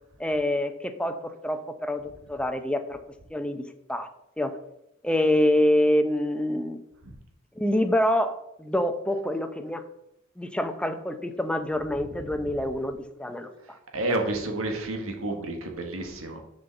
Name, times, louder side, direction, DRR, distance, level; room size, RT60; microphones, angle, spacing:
voice 1, 0.2-2.0 2.3-3.0 3.3-3.6 3.9-4.1 4.4-4.6 5.0-6.8 7.6-9.8 10.4-13.5, left 1 dB, 5° left, 8 dB, 0.6 m, -26 dB
voice 2, 13.6-16.4, right 2 dB, 90° right, 3 dB, 1.6 m, -30 dB
6.8 x 5.3 x 7.1 m, 0.83 s
head